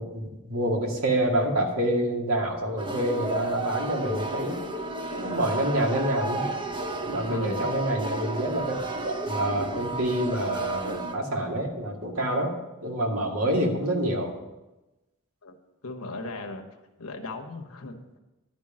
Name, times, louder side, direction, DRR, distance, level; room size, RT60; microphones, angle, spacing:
voice 1, 0.0-4.6 5.2-6.5 7.1-8.8 9.0-12.5 12.8-14.3, right 1 dB, 75° right, 0 dB, 2.2 m, -27 dB
sound 1, 2.8-11.1, right 2 dB, 20° right, 0.9 m, -32 dB
voice 2, 7.3-7.7 15.4-15.5 15.8-16.6 17.0-18.2, left 2 dB, 80° left, 4 dB, 1.3 m, -37 dB
11.5 x 5.4 x 8.8 m, 1.0 s
head